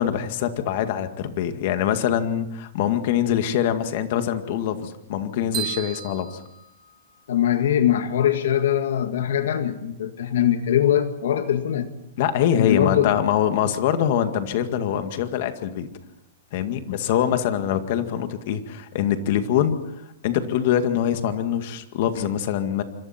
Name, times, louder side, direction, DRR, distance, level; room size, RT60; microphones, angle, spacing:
voice 1, 0.0-6.4 12.2-15.9 16.5-19.8 20.2-22.8, left 10 dB, 45° left, 8 dB, 2.0 m, -24 dB
sound 1, 5.5-7.5, right 11 dB, 25° right, 5.2 m, -34 dB
voice 2, 7.3-11.9 12.6-13.2, left 10 dB, 70° left, 8 dB, 1.9 m, -22 dB
26.5 x 25.0 x 4.5 m, 0.81 s
supercardioid pair, 170°, 0 cm